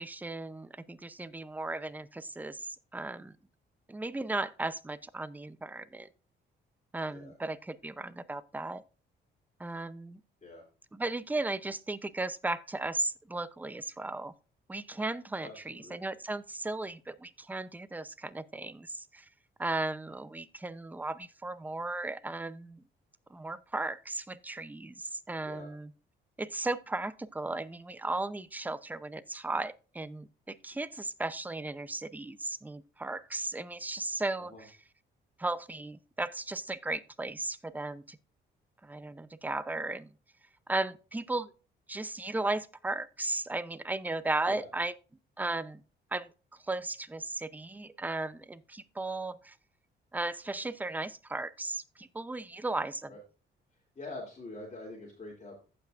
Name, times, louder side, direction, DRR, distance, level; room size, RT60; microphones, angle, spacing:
voice 1, 0.0-3.3 3.9-6.1 6.9-8.8 9.6-10.2 10.9-14.3 14.7-19.2 19.6-22.8 23.3-25.9 26.4-34.7 35.4-38.2 38.8-40.1 40.7-41.5 41.9-44.9 45.4-45.8 46.1-46.3 46.6-49.6 50.1-53.1, right 2 dB, 10° right, 0.6 m, -36 dB
voice 2, 15.4-16.0 25.4-25.7 34.4-34.6 44.5-44.7 53.1-53.2 53.9-55.6, left 2 dB, 35° left, 2.9 m, -45 dB
15.5 x 5.8 x 2.5 m
cardioid pair, 90°, 20 cm